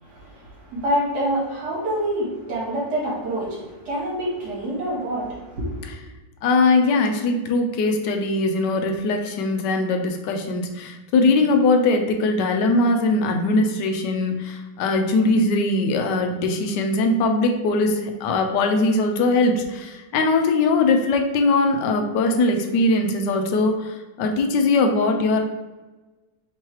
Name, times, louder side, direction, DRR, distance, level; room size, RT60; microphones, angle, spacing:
voice 1, 0.0-5.9, equal, 65° right, -6 dB, 1.8 m, -27 dB
voice 2, 6.4-25.4, left 2 dB, 80° left, 4 dB, 1.2 m, -21 dB
3.7 x 3.1 x 4.4 m, 1.2 s
omnidirectional pair, 1.9 m